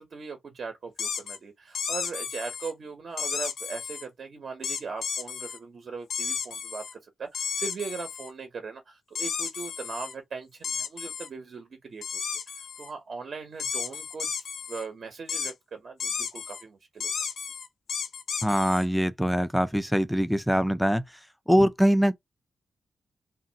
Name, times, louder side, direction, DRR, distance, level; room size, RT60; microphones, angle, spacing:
voice 1, 0.0-6.8 7.2-12.0 12.8-14.3 14.7-17.1, right 5 dB, 45° right, 0.6 m, -39 dB
sound 1, 1.0-1.4 1.7-2.7 3.2-4.0 4.6-5.6 6.1-6.9 7.3-8.3 9.1-10.1 10.6-11.3 12.0-12.9 13.6-14.8 15.3-15.5 16.0-16.6 17.0-18.8, left 6 dB, 65° left, 0.4 m, -33 dB
voice 2, 18.4-21.0 21.5-22.1, equal, ahead, 0.3 m, -23 dB
3.0 x 2.4 x 2.7 m
wide cardioid pair, 160°, 0 cm